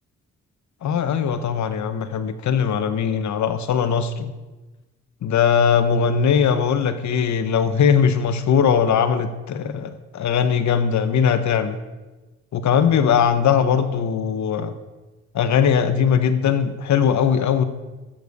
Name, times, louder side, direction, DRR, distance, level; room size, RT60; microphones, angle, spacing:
voice 1, 0.8-4.3 5.2-11.8 12.5-14.7 15.3-17.6, left 7 dB, 65° left, 11 dB, 0.9 m, -20 dB
14.5 x 7.2 x 6.6 m, 1.2 s
cardioid pair, 60°, 30 cm